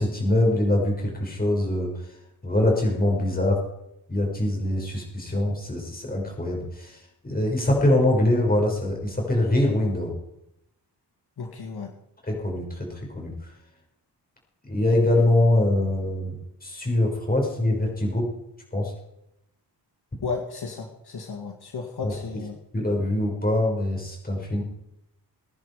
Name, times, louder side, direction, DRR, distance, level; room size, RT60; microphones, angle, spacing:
voice 1, 0.0-2.1 2.4-3.6 4.1-10.1 12.3-13.5 14.6-18.3 18.7-18.9 22.0-22.1 22.7-24.6, left 1 dB, 20° left, -1 dB, 6.2 m, -23 dB
voice 2, 11.4-11.9 20.2-22.6, left 4 dB, 65° left, 2 dB, 2.2 m, -33 dB
22.0 x 10.5 x 5.0 m, 0.81 s
wide cardioid pair, 150°, 42 cm